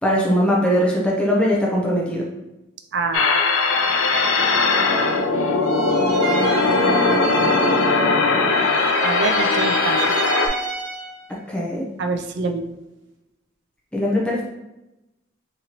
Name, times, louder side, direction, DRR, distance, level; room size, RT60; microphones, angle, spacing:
voice 1, 0.0-2.2 11.5-11.9 13.9-14.4, equal, 5° left, -4 dB, 0.5 m, -20 dB
voice 2, 2.9-3.4 9.0-10.1 12.0-12.7, right 3 dB, 60° right, 6 dB, 0.4 m, -26 dB
sound 1, 3.1-10.5, left 3 dB, 85° left, 0.5 m, -19 dB
sound 2, 5.6-8.2 8.5-11.2, right 4 dB, 75° right, 0.9 m, -29 dB
3.8 x 3.0 x 2.8 m, 0.95 s
head